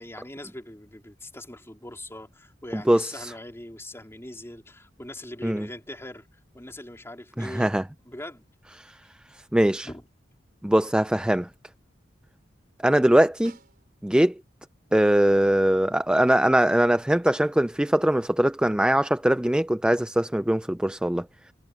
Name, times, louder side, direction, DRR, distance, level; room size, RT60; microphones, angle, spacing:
voice 1, 0.0-7.7 8.0-8.5 9.8-10.0, left 1 dB, 15° left, 3.9 m, -41 dB
voice 2, 2.7-3.3 5.4-5.7 7.4-7.8 8.8-9.0 9.3-9.9 10.6-11.5 12.8-13.6 14.0-14.4 14.9-21.3, right 1 dB, 5° right, 0.4 m, -22 dB
Snare drum, 13.4-14.4 18.8-18.9, right 4 dB, 55° right, 4.0 m, -53 dB
head